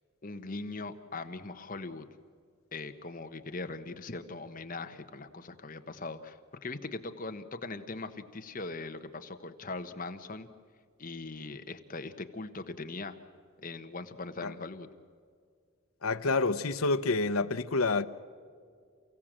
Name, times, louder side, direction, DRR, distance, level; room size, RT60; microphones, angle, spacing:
voice 1, 0.2-2.1 2.7-10.5 11.0-13.2 13.6-14.9, left 3 dB, 40° left, 1.2 m, -40 dB
voice 2, 16.0-18.1, left 3 dB, 80° left, 0.8 m, -28 dB
29.0 x 16.5 x 7.5 m
head